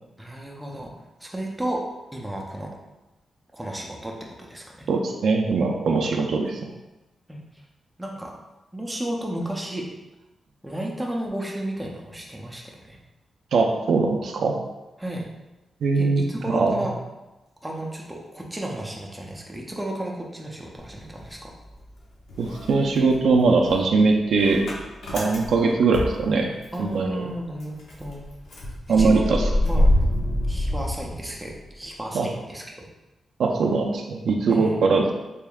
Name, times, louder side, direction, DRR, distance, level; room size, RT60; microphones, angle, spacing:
voice 1, 0.2-0.9 1.2-1.8 2.1-2.7 3.5-4.1 4.4-4.9 5.9-6.1 7.3-7.6 8.0-8.3 8.7-9.8 10.6-13.0 15.0-15.2 16.0-16.9 17.6-21.5 26.7-28.2 28.9-29.9 30.5-32.9 34.5-34.8, right 1 dB, 5° right, -1 dB, 0.5 m, -33 dB
voice 2, 4.9-6.6 13.5-14.6 15.8-16.8 22.4-24.7 25.1-26.5 26.8-27.2 28.9-29.5 32.1-32.3 33.4-35.1, right 4 dB, 75° right, 1 dB, 0.4 m, -21 dB
Motor vehicle (road) / Engine starting, 20.8-22.0 22.3-26.9 27.3-27.4 27.6-31.7, left 1 dB, 80° left, 0.8 m, -26 dB
3.4 x 3.4 x 2.3 m, 1.0 s
wide cardioid pair, 125°, 0 cm